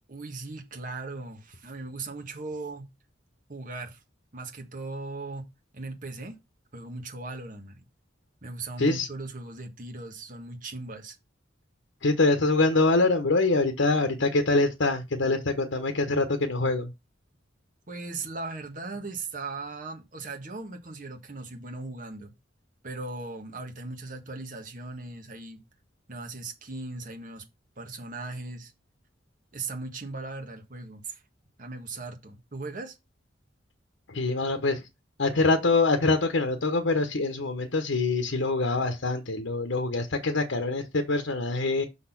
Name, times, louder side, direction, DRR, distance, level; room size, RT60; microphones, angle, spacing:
voice 1, 0.1-2.9 3.5-4.0 4.3-5.4 5.7-6.4 6.7-7.9 8.4-11.2 17.9-22.3 22.8-25.6 26.1-27.4 27.8-28.7 29.5-31.2 31.6-33.0, right 3 dB, 45° right, 1.6 m, -38 dB
voice 2, 12.0-16.9 34.1-34.8 35.2-41.8, left 3 dB, 80° left, 1.0 m, -24 dB
6.1 x 4.1 x 5.9 m
head